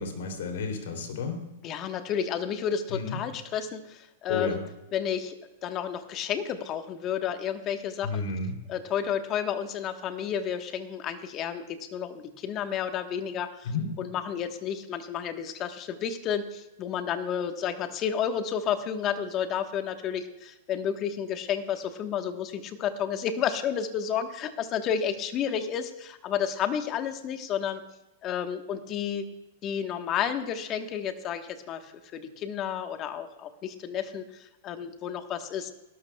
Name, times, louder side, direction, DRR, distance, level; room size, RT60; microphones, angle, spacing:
voice 1, 0.0-1.4 2.9-3.2 4.3-4.6 8.0-8.5 13.6-13.9, left 4 dB, 70° left, 4 dB, 3.0 m, -31 dB
voice 2, 1.6-4.6 4.9-5.4 5.6-8.2 8.7-27.8 28.2-29.3 29.6-35.7, left 8 dB, 35° left, 8 dB, 1.2 m, -31 dB
18.0 x 12.5 x 2.3 m, 0.99 s
hypercardioid pair, 120°, 0 cm